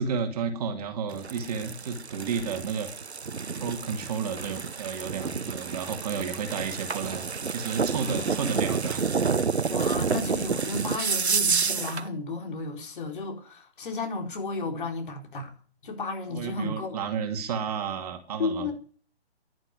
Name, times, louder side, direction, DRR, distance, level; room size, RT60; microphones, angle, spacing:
voice 1, 0.0-2.9 3.5-9.1 16.3-18.7, right 6 dB, 35° right, 2.4 m, -32 dB
sound 1, 1.1-12.1, right 5 dB, 75° right, 1.0 m, -29 dB
voice 2, 8.0-8.6 9.7-15.5 15.8-17.1 18.4-18.7, left 3 dB, 50° left, 4.2 m, -33 dB
11.0 x 11.0 x 10.0 m
figure-of-eight pair, 135°, 32 cm